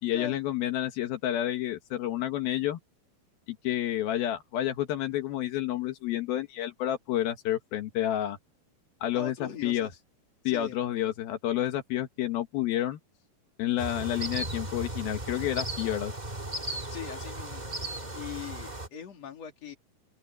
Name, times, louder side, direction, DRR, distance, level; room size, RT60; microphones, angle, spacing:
voice 1, 0.0-2.8 3.5-8.4 9.0-9.9 10.4-13.0 13.6-16.1, left 12 dB, 80° left, 3.3 m, -30 dB
voice 2, 9.1-9.9 10.4-10.8 16.9-17.6 18.1-19.8, left 8 dB, 45° left, 3.9 m, -40 dB
sound 1, 13.8-18.9, right 1 dB, 20° right, 1.3 m, -36 dB
open air
omnidirectional pair, 4.2 m